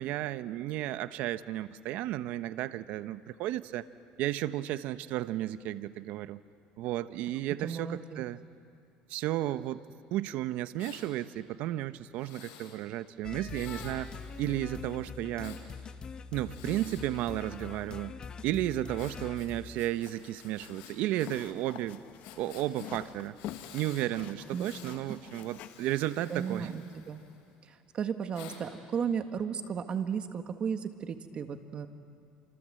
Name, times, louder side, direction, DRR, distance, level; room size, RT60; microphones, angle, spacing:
voice 1, 0.0-3.8 4.2-6.4 6.8-8.4 9.1-9.8 10.1-14.1 14.4-15.6 16.3-18.1 18.4-22.0 22.4-23.4 23.7-26.7, right 14 dB, 65° right, 13 dB, 0.9 m, -33 dB
voice 2, 7.6-8.2 24.5-24.7 25.1-25.2 26.3-27.2 27.6-31.9, right 7 dB, 40° right, 8 dB, 1.8 m, -34 dB
Breathing, 10.8-11.1 12.1-12.8 13.5-15.6 16.4-18.0 19.0-21.3 21.6-21.7 22.2-22.9 23.3-24.1 24.4-24.9 25.4-27.5 28.3-28.6, left 8 dB, 80° left, 5.4 m, -52 dB
sound 1, 13.2-19.8, left 5 dB, 30° left, 1.1 m, -43 dB
sound 2, 20.0-25.7, left 11 dB, 60° left, 1.4 m, -47 dB
28.0 x 26.0 x 7.8 m, 2.3 s
supercardioid pair, 110°, 3 cm